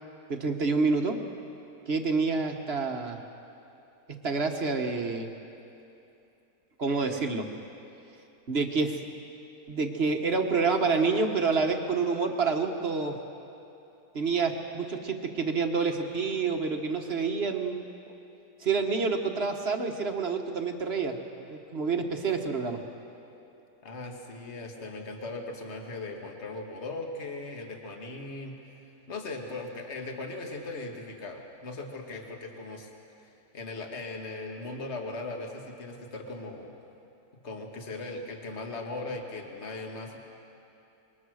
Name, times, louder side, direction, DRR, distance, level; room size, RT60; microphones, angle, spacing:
voice 1, 0.3-1.2 1.9-3.2 4.2-5.3 6.8-7.5 8.5-9.0 9.7-13.2 14.1-17.8 18.6-21.2 21.5-22.8, right 4 dB, 40° right, 4 dB, 1.5 m, -28 dB
voice 2, 23.8-28.5 29.1-32.9 33.2-36.7 37.4-40.2, left 2 dB, 40° left, 2 dB, 2.1 m, -38 dB
26.5 x 22.5 x 6.5 m, 2.8 s
omnidirectional pair, 1.9 m